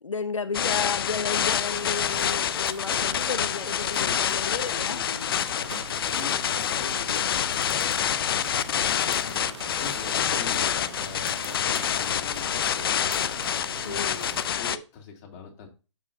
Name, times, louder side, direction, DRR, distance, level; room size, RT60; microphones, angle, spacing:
voice 1, 0.0-5.2 13.8-14.4, left 4 dB, 85° left, 0.6 m, -33 dB
sound 1, 0.5-14.8, left 9 dB, 50° left, 0.5 m, -27 dB
sound 2, 1.7-14.5, right 5 dB, 65° right, 0.9 m, -42 dB
voice 2, 4.0-7.2 8.4-13.5 13.8-14.2 14.6-15.7, left 5 dB, 30° left, 2.4 m, -43 dB
9.0 x 7.0 x 2.6 m
figure-of-eight pair, 135°, 16 cm